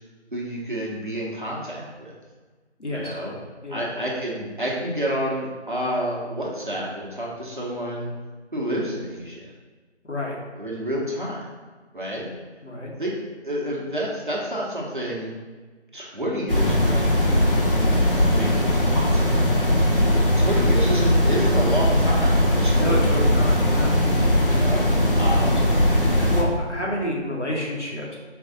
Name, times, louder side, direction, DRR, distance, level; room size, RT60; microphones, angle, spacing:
voice 1, 0.3-2.1 2.9-3.4 3.7-8.1 8.5-9.5 10.5-11.4 11.9-12.3 13.0-13.2 13.4-15.3 15.9-17.6 18.1-19.3 20.4-23.3 24.4-25.6, equal, 45° right, -4 dB, 1.0 m, -29 dB
voice 2, 2.8-3.1 3.6-3.8 10.1-10.4 12.6-12.9 22.8-24.0 26.1-28.2, left 1 dB, 85° left, -3 dB, 1.4 m, -29 dB
sound 1, 16.5-26.4, left 1 dB, 50° left, 0.7 m, -19 dB
4.6 x 2.6 x 3.9 m, 1.3 s
figure-of-eight pair, 180°, 35 cm